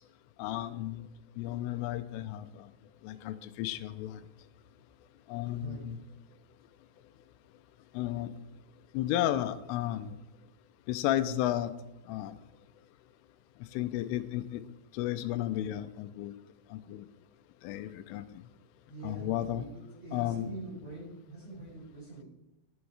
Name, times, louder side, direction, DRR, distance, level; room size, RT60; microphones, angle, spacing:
voice 1, 0.4-1.1 1.4-2.7 3.0-4.3 5.3-6.0 7.9-8.3 8.9-10.2 10.9-11.7 12.1-12.4 13.6-14.6 14.9-16.3 16.7-17.1 17.6-18.4 19.0-19.7 20.1-20.5, left 13 dB, 90° left, 11 dB, 3.3 m, -33 dB
voice 2, 18.9-22.2, right 3 dB, 35° right, -6 dB, 5.6 m, -44 dB
18.5 x 8.3 x 4.8 m, 0.93 s
omnidirectional pair, 5.6 m